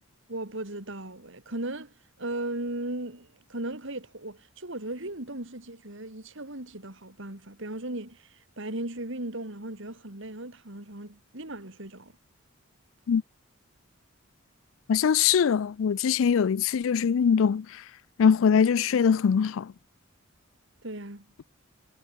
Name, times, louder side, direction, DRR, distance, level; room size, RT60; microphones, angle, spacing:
voice 1, 0.3-12.2 20.8-21.3, right 1 dB, 60° right, 3.3 m, -37 dB
voice 2, 14.9-17.7 18.2-19.7, left 7 dB, 70° left, 0.4 m, -22 dB
head